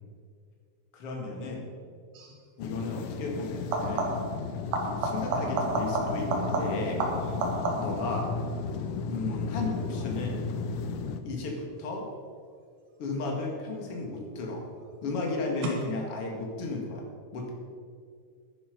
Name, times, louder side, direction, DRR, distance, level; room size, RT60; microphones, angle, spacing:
voice 1, 0.9-1.7 2.6-4.2 4.8-7.0 7.7-8.3 9.0-10.5 11.2-12.1 13.0-14.6 15.0-17.0 17.3-17.5, left 3 dB, 50° left, 0 dB, 2.5 m, -34 dB
sound 1, 2.1-2.4 3.6-4.4 4.7-8.1 13.5-14.1 15.6-15.7, right 3 dB, 80° right, 3.1 m, -31 dB
sound 2, 2.6-11.2, left 5 dB, 75° left, 2.0 m, -34 dB
11.5 x 10.0 x 5.2 m, 2.2 s
omnidirectional pair, 3.7 m